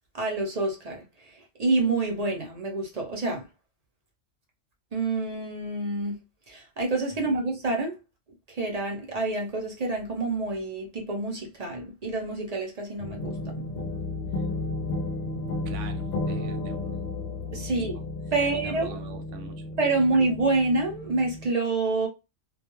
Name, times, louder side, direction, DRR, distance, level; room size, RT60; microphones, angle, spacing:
voice 1, 0.1-3.5 4.9-6.2 6.5-8.0 8.5-13.4 17.5-18.0 18.3-19.0 19.8-22.1, right 3 dB, 45° right, 0.5 m, -27 dB
sound 1, 13.0-21.5, left 2 dB, 65° left, 0.7 m, -33 dB
voice 2, 15.7-16.9 17.8-17.9 18.4-19.6, right 4 dB, 75° right, 0.9 m, -43 dB
2.3 x 2.2 x 2.9 m
omnidirectional pair, 1.3 m